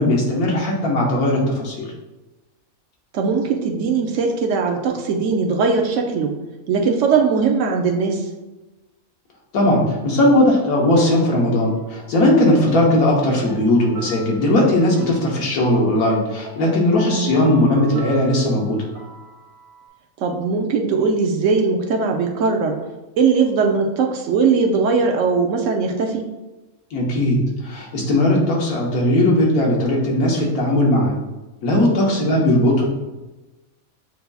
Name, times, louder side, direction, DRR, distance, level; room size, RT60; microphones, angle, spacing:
voice 1, 0.0-1.9 9.5-18.8 26.9-27.4 27.6-31.1 31.6-32.9, left 1 dB, 90° left, -2 dB, 1.5 m, -18 dB
voice 2, 3.1-6.3 6.7-8.2 17.0-17.4 20.2-22.8 23.2-26.2 32.0-32.3, right 5 dB, 70° right, 2 dB, 0.8 m, -20 dB
sound 1, 10.6-19.9, right 1 dB, 50° right, 1.4 m, -40 dB
7.8 x 2.7 x 2.3 m, 1.1 s
omnidirectional pair, 1.5 m